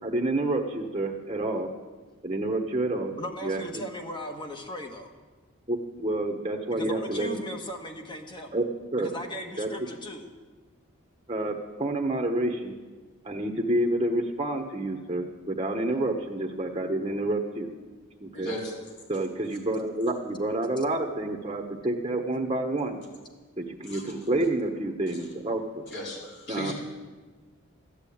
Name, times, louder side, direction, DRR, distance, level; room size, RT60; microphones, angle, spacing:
voice 1, 0.0-1.7 2.2-3.2 3.4-3.8 5.7-7.4 8.5-8.6 8.9-9.1 9.6-9.7 11.3-12.7 13.2-17.7 18.2-18.5 19.1-23.0 23.6-25.8 26.5-26.7, right 1 dB, 25° right, 1 dB, 1.1 m, -28 dB
voice 2, 3.2-5.1 6.7-8.5 9.0-10.3, left 1 dB, 25° left, 3 dB, 1.5 m, -38 dB
voice 3, 18.3-18.7 23.8-24.2 25.1-25.2 25.9-26.7, left 1 dB, 55° left, -3 dB, 4.3 m, -36 dB
13.5 x 10.5 x 8.7 m, 1.3 s
head